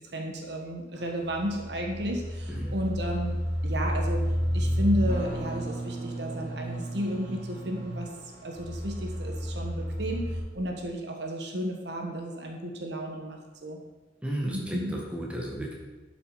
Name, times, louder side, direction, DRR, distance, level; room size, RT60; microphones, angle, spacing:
voice 1, 0.0-4.2 4.5-8.1 8.4-13.8 14.5-14.9, equal, 65° right, 2 dB, 1.4 m, -33 dB
sound 1, 0.9-10.4, equal, 40° right, 3.0 m, -31 dB
voice 2, 14.2-15.7, right 1 dB, 5° right, -3 dB, 1.6 m, -33 dB
12.0 x 5.9 x 5.0 m, 1.2 s
head